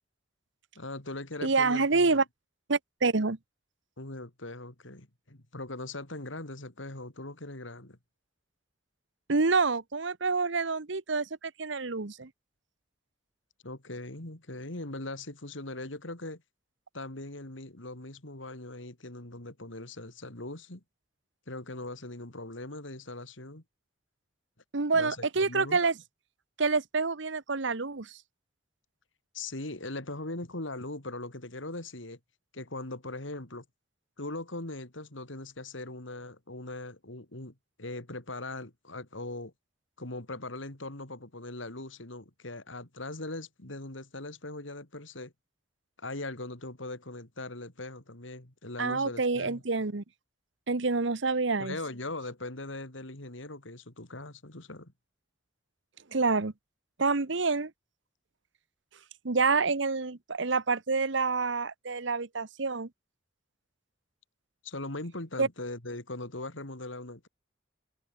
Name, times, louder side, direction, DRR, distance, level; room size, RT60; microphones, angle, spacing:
voice 1, 0.7-2.2 4.0-8.0 13.6-16.4 16.9-20.8 21.5-23.6 24.9-25.8 29.3-32.2 32.5-33.6 34.2-39.5 40.0-45.3 46.0-49.6 51.6-54.9 64.6-67.3, left 2 dB, 75° left, 3.4 m, -40 dB
voice 2, 1.4-2.2 2.7-3.4 9.3-12.3 24.7-26.0 26.6-28.2 48.8-50.0 50.7-51.8 56.1-56.5 57.0-57.7 59.2-62.9 65.4-65.5, right 4 dB, 65° right, 1.1 m, -27 dB
head